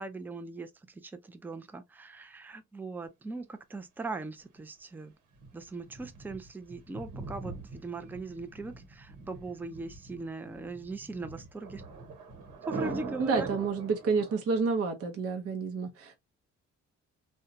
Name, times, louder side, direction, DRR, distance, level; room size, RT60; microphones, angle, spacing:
voice 1, 0.0-5.1 5.5-11.8 12.7-13.5, right 3 dB, 5° right, 0.4 m, -40 dB
Thunder, 5.4-14.4, right 4 dB, 85° right, 1.0 m, -42 dB
voice 2, 13.2-16.2, right 4 dB, 50° right, 0.7 m, -29 dB
2.7 x 2.2 x 2.5 m
cardioid pair, 90°, 30 cm